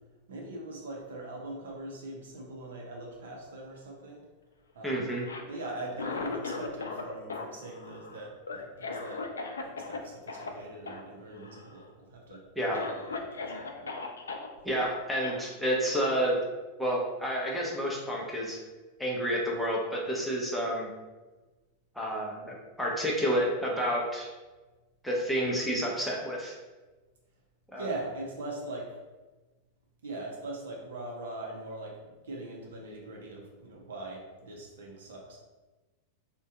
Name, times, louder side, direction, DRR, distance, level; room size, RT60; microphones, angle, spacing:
voice 1, 0.3-4.2 4.7-5.1 5.5-9.2 9.6-12.4 12.7-14.0 27.8-29.0 30.0-35.4, right 2 dB, 60° right, -1 dB, 0.6 m, -41 dB
voice 2, 4.8-5.2 12.6-12.8 14.6-16.4 16.8-18.6 19.0-20.9 22.0-24.3 25.0-26.6 27.7-27.9, equal, ahead, -3 dB, 0.6 m, -30 dB
Cough, 5.2-7.0 7.3-10.0 10.3-10.5 10.9-11.0 11.3-11.8 12.3-12.4 12.7-14.5 15.2-15.4, left 3 dB, 70° left, 0.3 m, -38 dB
2.6 x 2.2 x 3.6 m, 1.2 s
figure-of-eight pair, 90°, 0 cm